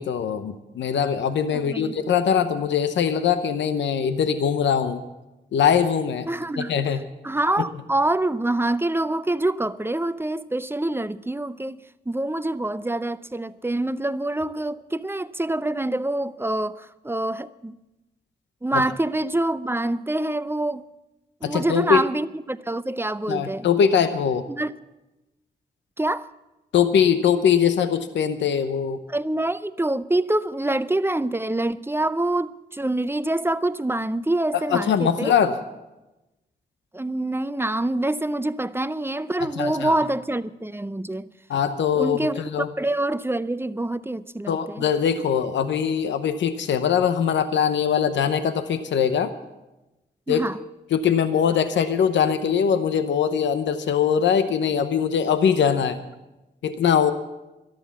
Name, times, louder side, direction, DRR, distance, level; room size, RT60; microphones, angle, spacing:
voice 1, 0.0-5.0 5.5-6.3 6.6-7.0 18.7-18.8 21.4-22.0 23.3-24.5 26.7-29.0 34.5-35.6 39.4-39.9 41.5-42.7 44.5-49.3 50.3-50.4 50.9-56.0 56.6-57.1, left 7 dB, 85° left, 0.8 m, -22 dB
voice 2, 1.5-1.9 6.3-6.7 7.2-11.8 12.1-17.8 18.6-20.8 21.4-23.7 24.5-24.7 26.0-26.3 29.1-35.3 36.9-41.3 41.9-44.8 50.3-50.6, right 1 dB, 10° right, 0.5 m, -26 dB
13.5 x 11.5 x 7.0 m
cardioid pair, 55°, 18 cm